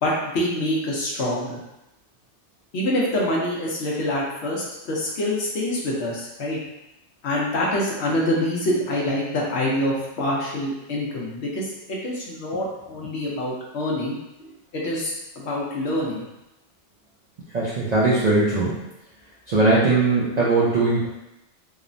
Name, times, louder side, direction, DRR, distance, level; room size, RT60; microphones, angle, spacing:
voice 1, 0.0-1.6 2.7-6.6 7.2-16.3, left 1 dB, 70° left, -3 dB, 0.9 m, -26 dB
voice 2, 17.5-18.8 19.5-21.1, right 3 dB, 60° right, -8 dB, 0.4 m, -20 dB
3.0 x 2.0 x 2.5 m, 0.92 s
omnidirectional pair, 1.2 m